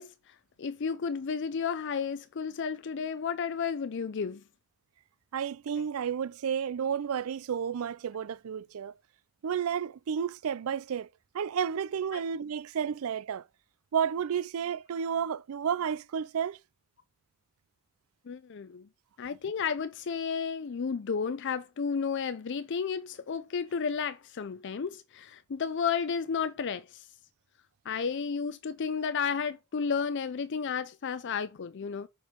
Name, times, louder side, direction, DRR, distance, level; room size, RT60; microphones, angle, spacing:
voice 1, 0.0-4.4 12.1-12.2 18.3-18.9 19.2-27.1 27.9-32.1, left 6 dB, 55° left, 0.4 m, -32 dB
voice 2, 5.3-8.9 9.4-11.1 11.3-13.4 13.9-16.6, right 7 dB, 70° right, 0.4 m, -31 dB
6.8 x 4.6 x 5.0 m
head